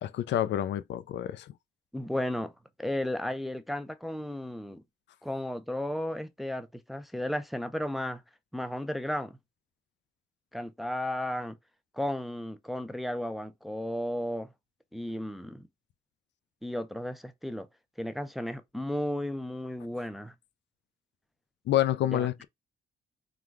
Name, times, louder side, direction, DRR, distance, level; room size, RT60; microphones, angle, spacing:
voice 1, 0.0-1.5 21.7-22.4, left 12 dB, 65° left, 0.4 m, -28 dB
voice 2, 1.9-2.5 2.8-4.8 5.2-8.2 8.5-9.4 10.5-11.6 11.9-14.5 14.9-15.7 16.6-17.7 18.0-20.3 22.1-22.3, left 1 dB, ahead, 0.5 m, -34 dB
3.8 x 2.3 x 4.6 m
cardioid pair, 90°, 20 cm